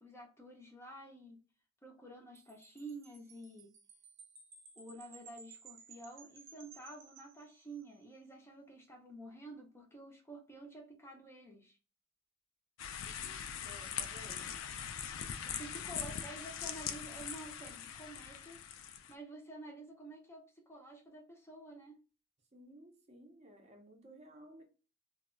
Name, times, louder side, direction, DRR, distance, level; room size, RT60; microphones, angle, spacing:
voice 1, 0.0-1.4 1.8-3.7 4.8-11.8 15.4-18.6 19.1-22.0, right 2 dB, 15° left, 0.5 m, -50 dB
Wind chime, 2.3-8.0, right 5 dB, 75° right, 0.8 m, -58 dB
sound 1, 12.8-19.1, left 8 dB, 85° left, 0.3 m, -42 dB
voice 2, 13.1-14.6 16.0-16.1 22.5-24.6, equal, 35° right, 0.6 m, -56 dB
2.2 x 2.1 x 3.6 m
head